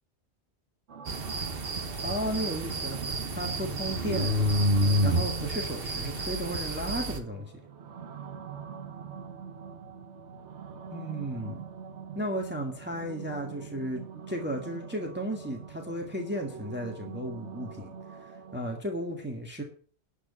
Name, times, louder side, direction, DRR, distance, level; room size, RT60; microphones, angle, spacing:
sound 1, 0.9-18.8, right 7 dB, 85° right, 1.3 m, -44 dB
sound 2, 1.1-7.2, right 1 dB, 60° right, 1.5 m, -29 dB
voice 1, 2.0-3.0 3.3-4.3 5.0-7.5 10.9-11.6 12.1-19.6, equal, 10° right, 2 dB, 1.7 m, -34 dB
12.0 x 5.0 x 8.3 m, 0.43 s
omnidirectional pair, 1.1 m